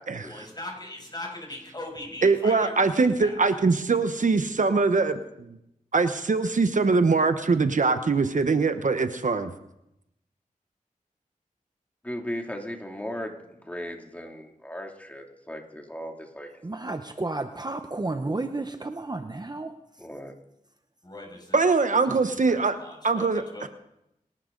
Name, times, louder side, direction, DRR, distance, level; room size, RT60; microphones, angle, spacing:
voice 1, 0.2-3.4 21.0-21.6 22.1-23.7, left 1 dB, 30° left, 0 dB, 5.9 m, -41 dB
voice 2, 2.2-5.1 5.9-9.5 21.5-22.8 23.0-23.7, right 4 dB, 65° right, 9 dB, 1.0 m, -22 dB
voice 3, 12.0-16.5 20.0-20.4, equal, 10° left, 2 dB, 2.7 m, -37 dB
voice 4, 16.6-19.7, right 2 dB, 30° right, 7 dB, 0.9 m, -32 dB
26.5 x 12.5 x 3.9 m, 0.84 s
wide cardioid pair, 70°, 14 cm